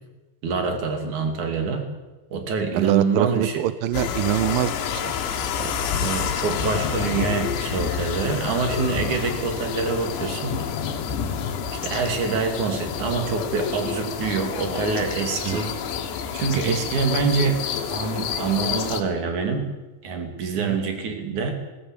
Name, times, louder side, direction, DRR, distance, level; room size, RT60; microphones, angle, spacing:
voice 1, 0.4-1.9 2.3-3.6 6.0-10.9 11.7-15.7 16.3-17.6 17.9-19.7 20.0-21.5, right 5 dB, 50° right, 5 dB, 3.8 m, -25 dB
voice 2, 2.7-4.7 5.0-5.1 5.6-5.7 6.2-6.3 15.5-15.6 16.7-16.8 20.6-20.8, right 13 dB, 80° right, 14 dB, 2.0 m, -24 dB
sound 1, 3.9-19.0, left 7 dB, 85° left, 4.0 m, -28 dB
20.0 x 17.0 x 8.9 m, 1.1 s
omnidirectional pair, 5.0 m